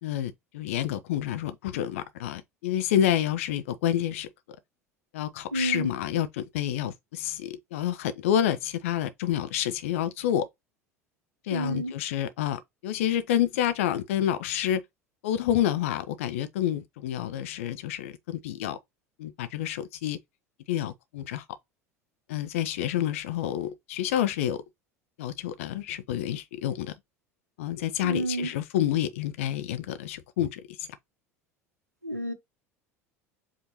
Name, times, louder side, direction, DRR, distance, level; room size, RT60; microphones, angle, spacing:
voice 1, 0.0-4.3 5.1-10.5 11.4-14.8 15.2-18.8 19.2-20.2 20.7-21.4 22.3-24.6 25.2-26.9 27.6-30.9, left 11 dB, 60° left, 0.6 m, -28 dB
voice 2, 5.5-5.9 11.5-11.9 28.0-28.5 32.0-32.3, right 1 dB, 90° right, 0.7 m, -30 dB
4.9 x 2.7 x 3.0 m
figure-of-eight pair, 70°, 8 cm